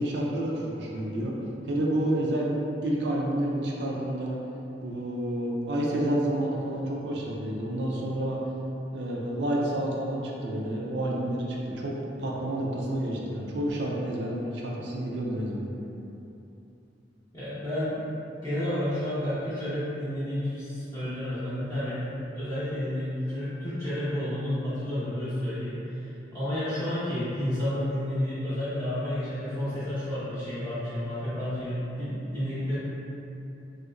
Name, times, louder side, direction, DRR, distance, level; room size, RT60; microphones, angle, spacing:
voice 1, 0.0-1.3 1.7-2.6 2.8-4.4 4.8-8.4 8.9-15.7, right 1 dB, 65° right, -2 dB, 0.5 m, -29 dB
voice 2, 17.3-18.0 18.4-32.8, left 1 dB, 20° left, -15 dB, 0.8 m, -31 dB
3.2 x 2.9 x 2.4 m, 2.9 s
head